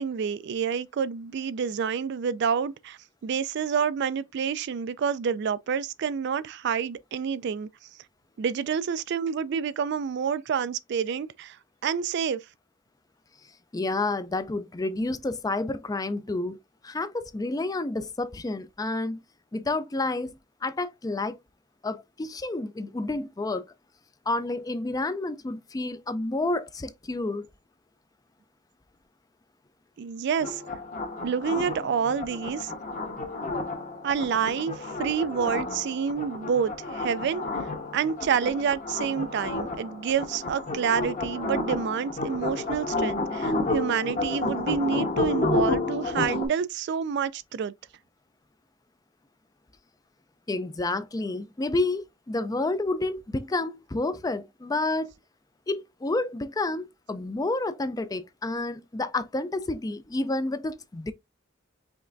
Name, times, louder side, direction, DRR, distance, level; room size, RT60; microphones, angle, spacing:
voice 1, 0.0-7.7 8.4-11.6 11.8-12.4 30.0-30.6 31.2-32.7 34.0-37.5 37.9-47.7, right 7 dB, 60° right, 0.3 m, -28 dB
voice 2, 13.7-16.6 16.8-19.2 19.5-21.4 21.8-23.6 24.3-27.5 50.5-55.1 55.7-61.1, left 2 dB, 20° left, 0.4 m, -30 dB
sound 1, 30.4-46.5, left 2 dB, 40° left, 1.1 m, -31 dB
5.2 x 3.3 x 2.5 m
head